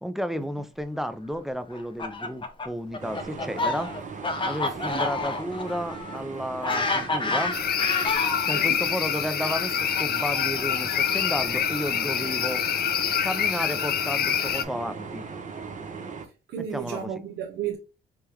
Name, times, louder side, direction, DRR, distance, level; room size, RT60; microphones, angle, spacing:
voice 1, 0.0-3.9 4.4-7.6 8.4-12.6 13.2-15.3 16.7-17.1, equal, ahead, 0.4 m, -32 dB
Fowl, 1.7-8.6 9.4-11.5, left 3 dB, 25° left, 0.8 m, -30 dB
sound 1, 3.0-16.3, right 5 dB, 40° right, 0.8 m, -38 dB
sound 2, 7.5-14.6, left 9 dB, 50° left, 0.5 m, -26 dB
voice 2, 16.5-17.8, right 9 dB, 75° right, 0.7 m, -33 dB
3.6 x 3.3 x 2.9 m
cardioid pair, 90°, 20 cm